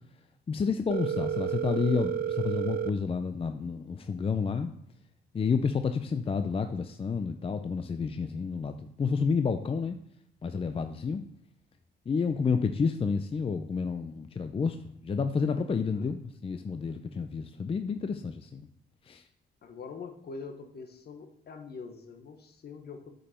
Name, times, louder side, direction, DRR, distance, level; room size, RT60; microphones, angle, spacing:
voice 1, 0.5-4.7 5.3-10.0 10.4-11.2 12.1-18.7 19.1-19.2, left 5 dB, 30° left, 8 dB, 0.5 m, -30 dB
Telephone, 0.9-2.9, right 8 dB, 55° right, 0.5 m, -31 dB
voice 2, 19.6-23.1, left 4 dB, 55° left, 6 dB, 1.3 m, -44 dB
8.6 x 5.4 x 4.4 m, 0.70 s
cardioid pair, 90°, 20 cm